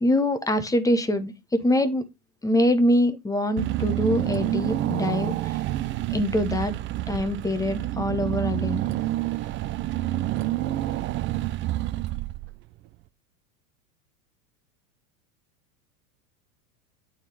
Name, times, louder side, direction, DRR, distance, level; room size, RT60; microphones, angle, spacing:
voice 1, 0.0-2.0 2.4-5.3 6.1-6.7 7.1-8.8, left 1 dB, 10° left, 0.9 m, -24 dB
Car / Engine, 3.6-12.7, right 15 dB, 30° right, 0.4 m, -28 dB
9.0 x 3.9 x 4.7 m
hypercardioid pair, 115°, 45 cm